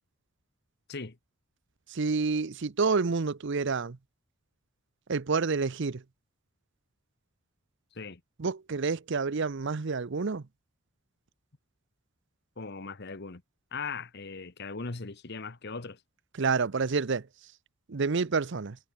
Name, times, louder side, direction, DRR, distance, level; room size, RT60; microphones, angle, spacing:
voice 1, 1.9-4.0 5.1-6.0 8.4-10.4 16.4-17.3 17.9-18.8, right 4 dB, 60° right, 0.7 m, -28 dB
voice 2, 12.6-13.4 13.7-16.0, left 4 dB, 50° left, 1.2 m, -39 dB
head